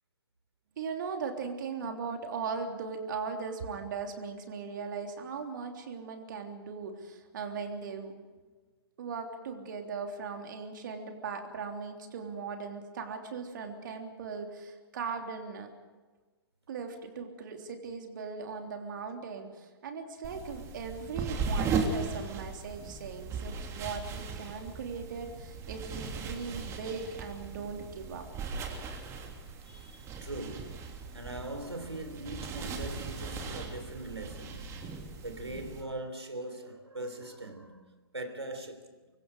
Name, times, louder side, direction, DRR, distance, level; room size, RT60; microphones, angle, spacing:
voice 1, 0.8-8.2 9.0-15.7 16.7-28.3, right 5 dB, 50° right, 3.3 m, -39 dB
sound 1, 20.2-35.8, right 4 dB, 20° right, 3.1 m, -38 dB
voice 2, 29.7-39.0, right 2 dB, 80° right, 3.5 m, -41 dB
25.5 x 23.5 x 5.0 m
figure-of-eight pair, 120°, 14 cm